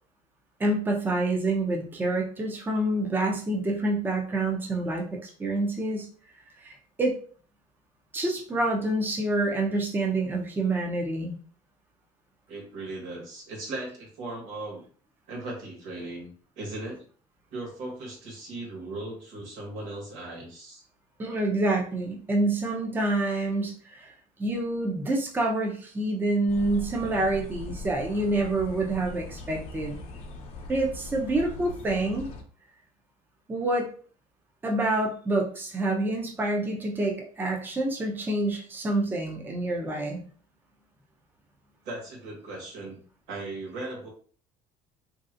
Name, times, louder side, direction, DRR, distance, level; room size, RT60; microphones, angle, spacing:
voice 1, 0.6-6.1 6.6-7.2 8.1-11.4 21.2-24.1 24.4-30.0 30.7-32.3 33.5-33.9 34.6-40.2, right 2 dB, 15° right, 0 dB, 0.6 m, -27 dB
voice 2, 12.5-14.8 15.3-16.3 16.6-17.0 17.5-20.8 41.8-44.1, right 2 dB, 80° right, 0 dB, 1.4 m, -38 dB
sound 1, 26.5-32.4, left 2 dB, 60° left, 0.7 m, -40 dB
3.2 x 2.7 x 2.5 m, 0.43 s
cardioid pair, 120°, 13 cm